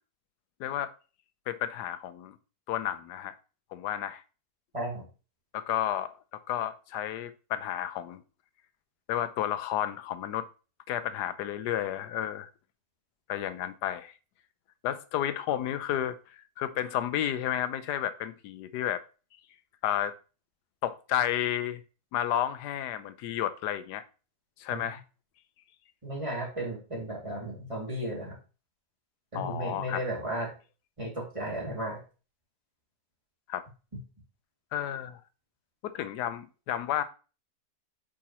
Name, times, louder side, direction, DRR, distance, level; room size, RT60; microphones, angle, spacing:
voice 1, 0.6-0.9 1.5-2.4 2.7-3.3 3.7-4.2 5.5-8.2 9.1-10.5 10.9-12.5 13.3-14.1 14.8-19.0 19.8-20.1 20.8-21.8 22.1-24.0 24.6-25.0 29.3-30.0 33.5-33.6 34.7-35.2 35.8-37.0, left 11 dB, 90° left, 1.2 m, -32 dB
voice 2, 4.7-5.0 24.7-24.8 26.0-28.4 29.3-30.5 31.0-32.0, right 1 dB, 20° right, 2.5 m, -34 dB
8.6 x 5.1 x 2.9 m
omnidirectional pair, 1.7 m